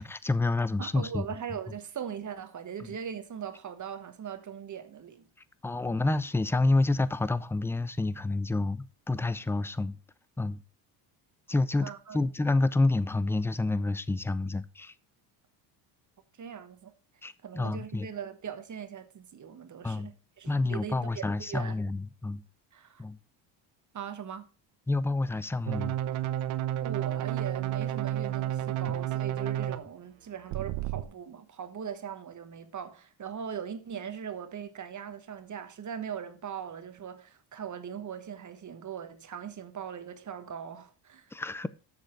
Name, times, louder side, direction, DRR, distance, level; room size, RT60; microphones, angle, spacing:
voice 1, 0.0-1.3 2.8-2.9 5.6-10.0 10.4-10.6 11.5-14.9 17.2-18.1 19.8-20.1 20.5-22.4 23.0-23.2 24.9-26.0 41.3-41.7, left 2 dB, 5° left, 0.4 m, -28 dB
voice 2, 0.8-5.3 11.8-12.2 16.4-16.9 17.4-21.7 22.7-23.0 23.9-24.5 26.8-41.3, right 8 dB, 35° right, 1.3 m, -40 dB
sound 1, 25.7-29.8 30.5-31.0, right 12 dB, 75° right, 1.1 m, -31 dB
7.4 x 6.7 x 5.8 m
supercardioid pair, 90°, 48 cm